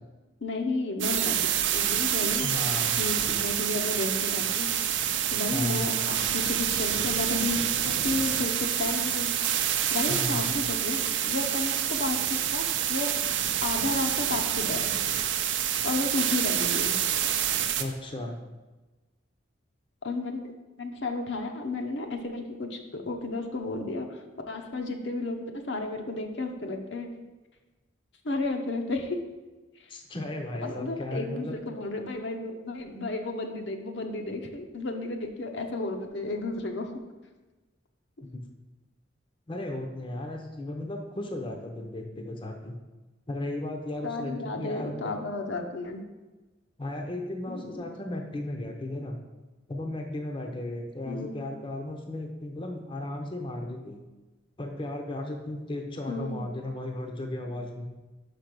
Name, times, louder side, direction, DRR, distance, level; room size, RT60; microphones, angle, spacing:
voice 1, 0.4-1.3 1.7-2.5 2.9-4.7 5.3-9.3 9.9-13.1 13.6-14.9 15.8-17.0 20.0-20.5 20.8-27.1 28.2-29.2 30.6-36.9 44.0-46.0 47.5-47.8 51.0-51.5 56.1-56.4, left 2 dB, 70° left, 4 dB, 0.8 m, -32 dB
sound 1, 1.0-17.8, right 10 dB, 80° right, 0.5 m, -27 dB
voice 2, 2.4-3.0 5.5-6.0 10.1-10.5 17.8-18.4 29.9-31.6 38.3-38.4 39.5-42.7 43.3-45.1 46.8-49.2 49.7-54.0 54.6-57.9, left 1 dB, 25° left, 3 dB, 0.6 m, -35 dB
5.7 x 5.1 x 6.0 m, 1.2 s
head